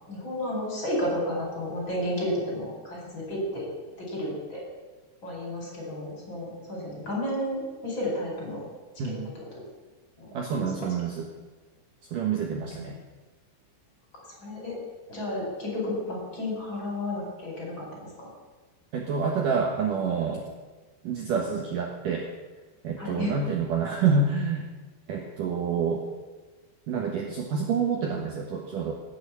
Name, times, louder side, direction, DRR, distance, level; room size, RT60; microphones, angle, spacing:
voice 1, 0.1-3.7 4.0-4.6 5.2-8.6 9.0-9.1 10.2-10.9 14.3-14.8 15.1-18.3 23.0-23.3, left 1 dB, 25° left, -2 dB, 5.1 m, -32 dB
voice 2, 9.0-9.3 10.3-11.3 12.1-13.0 18.9-20.5 21.0-22.3 22.8-24.7 25.1-26.1 26.9-28.9, right 5 dB, 65° right, 1 dB, 2.4 m, -27 dB
18.0 x 8.5 x 8.4 m, 1.3 s
omnidirectional pair, 5.2 m